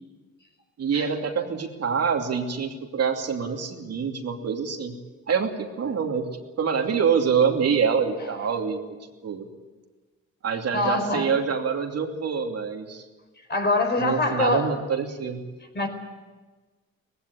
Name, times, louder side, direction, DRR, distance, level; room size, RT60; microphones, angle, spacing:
voice 1, 0.8-5.0 5.3-6.3 6.6-9.0 9.2-9.5 10.4-13.0 14.0-15.4, right 6 dB, 55° right, 3 dB, 2.8 m, -25 dB
voice 2, 10.7-11.3 13.5-14.7 15.7-15.9, left 2 dB, 35° left, 5 dB, 4.8 m, -24 dB
19.0 x 16.5 x 10.0 m, 1.3 s
cardioid pair, 90°, 30 cm